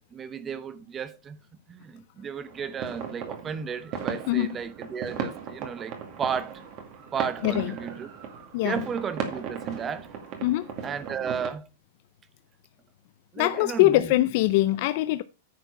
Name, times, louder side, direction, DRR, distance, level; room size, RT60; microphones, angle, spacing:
voice 1, 0.0-1.4 1.7-6.6 7.1-8.1 8.6-10.1 10.8-11.7 13.3-14.2, right 7 dB, 20° right, 0.8 m, -34 dB
sound 1, 2.5-11.5, right 7 dB, 40° right, 2.1 m, -37 dB
voice 2, 7.4-7.7 8.5-8.8 10.4-10.7 13.4-15.2, left 17 dB, 55° left, 0.5 m, -23 dB
9.5 x 4.5 x 5.6 m
hypercardioid pair, 130°, 0 cm